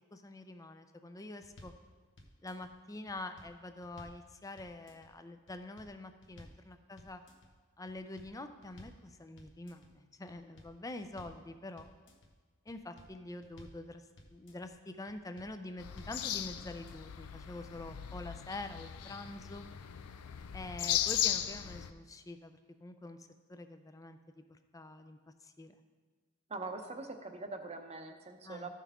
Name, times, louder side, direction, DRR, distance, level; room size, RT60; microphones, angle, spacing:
voice 1, 0.1-1.7 2.4-7.2 7.8-11.9 12.7-14.0 14.3-19.7 20.5-23.2 23.5-25.8 28.4-28.7, left 2 dB, 15° left, 8 dB, 0.5 m, -46 dB
sound 1, 1.4-1.8 2.2-2.7 3.1-4.2 4.6-5.1 5.5-5.9 6.2-6.6 7.0-7.5 7.9-9.0 9.4-9.9 10.3-11.4 11.8-12.3 12.7-13.8 14.2-14.7 15.1-15.5 15.8-16.2 16.6-17.1, left 1 dB, 60° left, 1.1 m, -56 dB
sound 2, 15.8-21.9, left 11 dB, 90° left, 0.5 m, -37 dB
voice 2, 26.5-28.7, right 3 dB, 30° right, 5 dB, 0.7 m, -43 dB
14.0 x 5.7 x 3.6 m, 1.5 s
head